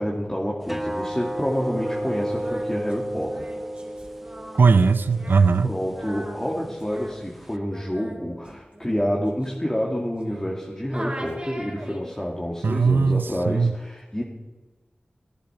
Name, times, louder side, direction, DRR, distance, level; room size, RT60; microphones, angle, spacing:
voice 1, 0.0-3.5 5.6-14.2, equal, 15° left, 2.4 m, -28 dB
sound 1, 0.6-7.6, right 1 dB, 5° right, 0.8 m, -33 dB
Singing, 1.6-10.6 10.9-12.3, right 1 dB, 35° right, 4.5 m, -41 dB
voice 2, 4.6-5.8 12.6-13.8, right 4 dB, 80° right, 0.5 m, -19 dB
18.0 x 10.5 x 4.6 m
cardioid pair, 45°, 3 cm